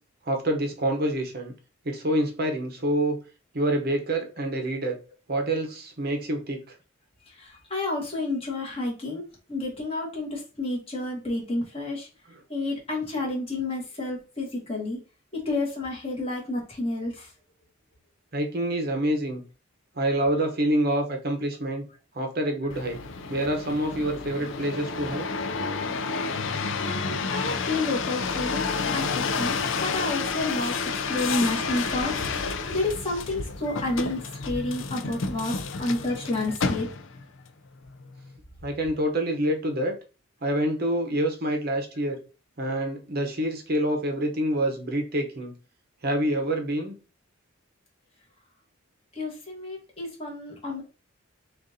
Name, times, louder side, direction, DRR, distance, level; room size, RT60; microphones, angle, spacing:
voice 1, 0.3-1.5 1.8-3.2 3.5-5.0 5.3-6.7 18.3-19.4 20.0-21.9 22.1-23.0 23.3-25.2 38.6-40.0 40.4-42.2 42.6-45.5 46.0-46.9, right 1 dB, 45° right, 0.8 m, -27 dB
voice 2, 7.2-9.2 9.5-12.1 12.5-15.0 15.3-17.3 26.8-36.9 49.1-50.8, left 2 dB, 25° left, 1.4 m, -30 dB
sound 1, 22.7-37.2 37.8-38.4, left 4 dB, 65° left, 0.5 m, -30 dB
6.3 x 2.5 x 2.7 m
head